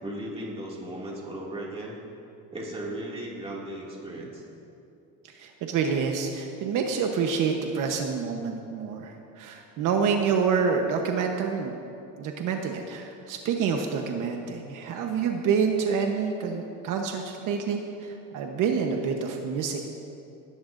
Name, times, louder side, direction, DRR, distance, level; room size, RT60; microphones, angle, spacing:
voice 1, 0.0-2.0 2.5-4.4, right 1 dB, 15° right, -4 dB, 2.3 m, -36 dB
voice 2, 5.3-11.8 12.2-19.9, right 6 dB, 65° right, 3 dB, 1.0 m, -27 dB
19.0 x 14.0 x 2.6 m, 2.7 s
cardioid pair, 150°, 33 cm